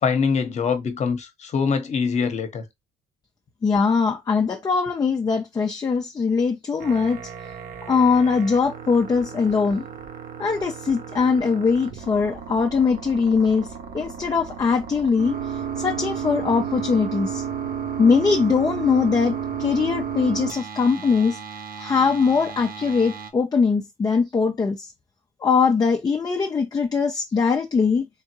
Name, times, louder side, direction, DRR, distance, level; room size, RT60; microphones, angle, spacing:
voice 1, 0.0-2.7, left 5 dB, 45° left, 1.1 m, -23 dB
voice 2, 3.6-7.2 7.9-9.8 10.4-13.7 13.9-15.4 15.8-17.4 18.0-21.4 21.8-24.9 25.4-28.1, left 5 dB, 25° left, 0.7 m, -21 dB
sound 1, 6.8-23.3, right 8 dB, 55° right, 1.0 m, -33 dB
3.7 x 3.5 x 3.0 m
cardioid pair, 110°, 17 cm